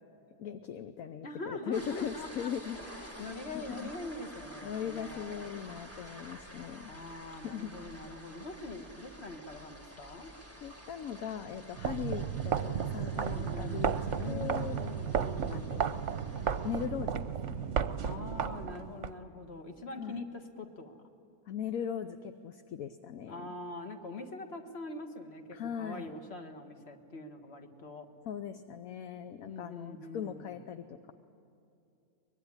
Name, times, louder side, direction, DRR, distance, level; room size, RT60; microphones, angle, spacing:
voice 1, 0.4-3.3 3.5-3.9 4.6-6.9 7.4-7.7 10.6-14.8 15.5-16.0 16.6-17.7 20.0-20.2 21.5-23.5 25.5-26.1 28.3-31.1, left 8 dB, 70° left, 9 dB, 1.2 m, -39 dB
voice 2, 1.2-5.4 6.9-10.3 13.1-13.9 14.1-15.7 18.0-21.0 23.3-28.1 29.4-30.5, left 2 dB, 45° left, 5 dB, 1.8 m, -43 dB
sound 1, 1.7-16.9, right 1 dB, 10° left, 1.7 m, -50 dB
sound 2, 11.8-19.1, right 7 dB, 55° right, 1.0 m, -33 dB
23.5 x 21.5 x 9.8 m, 2.6 s
omnidirectional pair, 1.6 m